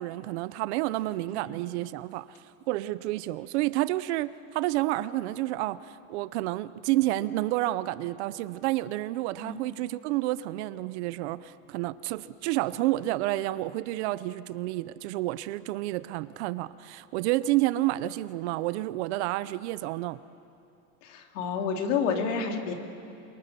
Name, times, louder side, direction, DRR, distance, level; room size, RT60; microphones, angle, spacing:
voice 1, 0.0-2.4 2.7-20.2, right 16 dB, 55° right, 16 dB, 0.7 m, -30 dB
voice 2, 21.0-22.7, left 6 dB, 70° left, 3 dB, 3.3 m, -29 dB
28.5 x 23.5 x 6.9 m, 2.6 s
supercardioid pair, 170°, 40 cm